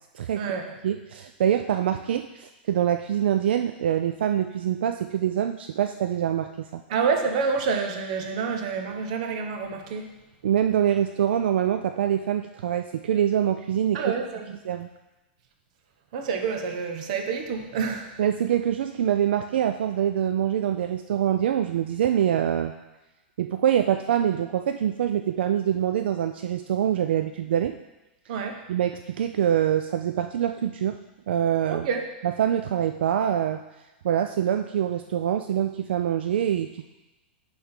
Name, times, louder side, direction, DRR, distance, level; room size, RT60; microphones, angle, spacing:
voice 1, 0.1-0.5 0.8-6.8 10.4-14.0 14.6-14.9 18.2-22.7 23.4-27.7 28.7-31.0 31.3-31.9 32.2-33.6 34.0-36.8, right 10 dB, 70° right, 7 dB, 0.4 m, -25 dB
voice 2, 6.9-10.1 13.9-14.6 16.1-18.1 28.3-28.6 31.7-32.0, right 5 dB, 40° right, 4 dB, 0.9 m, -28 dB
10.5 x 3.5 x 4.4 m, 1.0 s
supercardioid pair, 175°, 6 cm